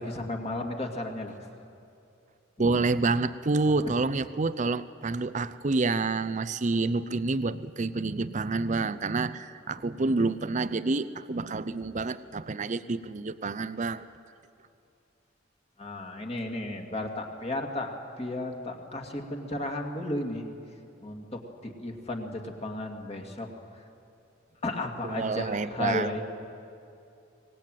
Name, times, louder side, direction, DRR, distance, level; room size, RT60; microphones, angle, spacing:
voice 1, 0.0-1.3 2.6-2.8 3.8-3.9 9.8-9.9 15.8-20.5 21.0-23.5 24.6-26.2, left 1 dB, 30° left, 3 dB, 2.4 m, -34 dB
voice 2, 2.6-14.0 25.0-26.2, right 3 dB, 40° right, 14 dB, 0.6 m, -28 dB
24.0 x 19.5 x 9.2 m, 2.7 s
head